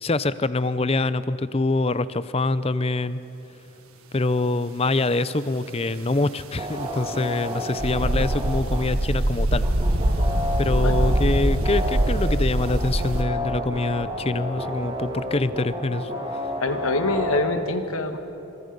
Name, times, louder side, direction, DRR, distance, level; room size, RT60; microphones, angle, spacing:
voice 1, 0.0-3.2 4.1-9.6 10.6-16.1, left 2 dB, 25° left, 15 dB, 0.6 m, -25 dB
sound 1, 6.6-8.9 9.6-12.3 12.6-17.6, left 1 dB, 25° right, 3.2 m, -31 dB
sound 2, 7.8-13.2, right 1 dB, 85° right, 1.6 m, -23 dB
voice 2, 16.6-18.2, left 2 dB, 80° left, 7 dB, 1.6 m, -24 dB
27.0 x 25.5 x 5.4 m, 2.9 s
head